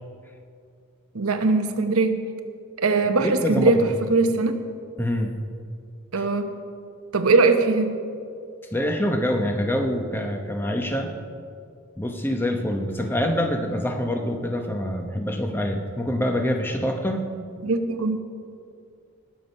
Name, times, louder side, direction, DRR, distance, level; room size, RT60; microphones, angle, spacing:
voice 1, 1.1-2.3 2.8-4.6 6.1-6.5 7.1-8.0 17.6-18.2, right 3 dB, 85° right, 7 dB, 1.0 m, -21 dB
voice 2, 3.2-4.0 5.0-5.3 6.2-6.3 8.7-11.1 12.0-17.3, equal, 10° left, 4 dB, 0.8 m, -25 dB
19.0 x 7.2 x 5.4 m, 2.3 s
head